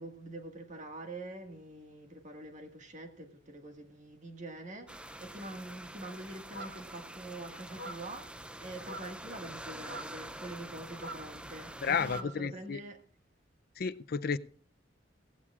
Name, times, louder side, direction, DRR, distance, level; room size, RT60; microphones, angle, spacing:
voice 1, 0.0-13.0, right 2 dB, 40° right, 1.8 m, -45 dB
sound 1, 4.9-12.2, right 1 dB, 5° right, 0.5 m, -46 dB
sound 2, 6.5-7.0 7.7-8.2 8.8-9.2 9.8-10.2 10.9-12.4, right 1 dB, 65° right, 2.4 m, -45 dB
voice 2, 11.8-12.8 13.8-14.4, left 6 dB, 55° left, 0.5 m, -32 dB
16.5 x 15.5 x 2.4 m
head